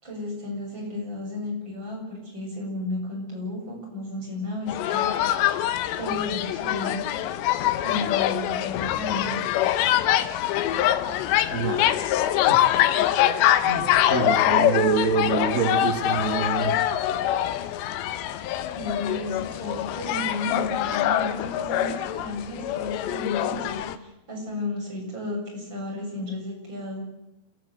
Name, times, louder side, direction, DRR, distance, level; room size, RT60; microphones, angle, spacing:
voice 1, 0.0-5.5 6.0-7.0 7.8-9.4 18.8-27.0, left 2 dB, 25° right, -1 dB, 8.2 m, -33 dB
sound 1, 4.7-24.0, left 12 dB, 80° left, 3.2 m, -24 dB
voice 2, 11.5-11.9 12.5-12.6 13.6-16.7, right 5 dB, 70° right, 5 dB, 0.7 m, -26 dB
28.0 x 15.0 x 8.2 m, 0.89 s
omnidirectional pair, 5.0 m